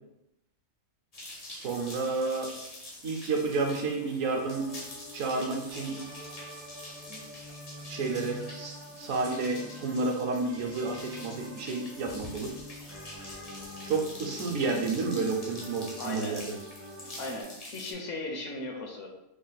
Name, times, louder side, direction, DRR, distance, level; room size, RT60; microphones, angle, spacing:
sound 1, 1.1-17.9, left 1 dB, 40° left, 0.5 m, -46 dB
voice 1, 1.5-2.5 3.0-4.6 5.1-6.0 7.1-7.2 7.9-12.5 13.9-16.5, right 3 dB, 75° right, 1 dB, 1.0 m, -31 dB
sound 2, 4.3-17.4, equal, 20° right, 0.4 m, -46 dB
voice 2, 16.0-16.4 17.2-19.1, left 2 dB, 65° left, 1 dB, 1.0 m, -37 dB
3.3 x 2.3 x 3.9 m, 0.86 s
omnidirectional pair, 1.4 m